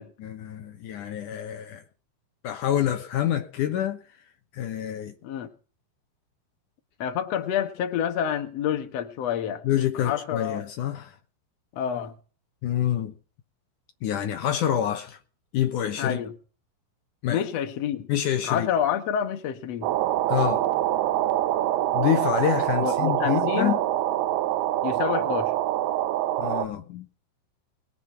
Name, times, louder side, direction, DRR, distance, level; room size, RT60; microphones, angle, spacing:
voice 1, 0.2-1.8 2.4-4.0 4.5-5.1 9.6-11.1 12.6-13.1 14.0-15.2 15.5-16.2 17.2-17.4 18.1-18.7 20.3-20.7 21.9-23.8 26.4-27.1, left 10 dB, 90° left, 1.7 m, -27 dB
voice 2, 7.0-9.6 9.9-10.6 11.7-12.1 16.0-16.3 17.3-18.1 18.4-19.9 22.7-23.8 24.8-25.5, left 9 dB, 65° left, 1.6 m, -28 dB
sound 1, 19.8-26.7, right 14 dB, 85° right, 2.2 m, -25 dB
21.5 x 8.3 x 5.8 m
omnidirectional pair, 5.4 m